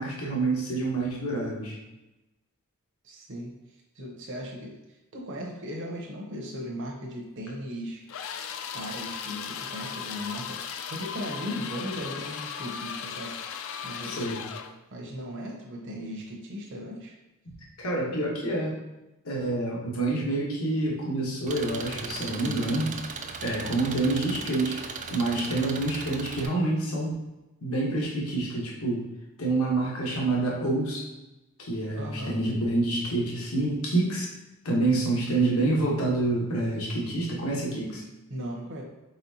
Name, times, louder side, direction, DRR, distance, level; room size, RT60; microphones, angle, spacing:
voice 1, 0.0-1.8 14.0-14.4 17.8-18.7 19.2-22.9 23.4-24.8 25.1-27.1 27.6-29.0 29.4-31.0 31.6-34.3 34.6-38.0, right 2 dB, 80° left, -3 dB, 1.2 m, -27 dB
voice 2, 3.0-3.5 3.9-4.8 5.1-8.4 8.7-13.3 13.8-14.4 14.9-17.2 32.0-32.4 38.3-38.8, equal, 60° right, -1 dB, 0.8 m, -37 dB
sound 1, 8.1-14.8, left 7 dB, 65° left, 0.3 m, -37 dB
Engine, 21.5-26.5, right 5 dB, 35° right, 0.4 m, -38 dB
4.3 x 4.2 x 2.8 m, 1.0 s
head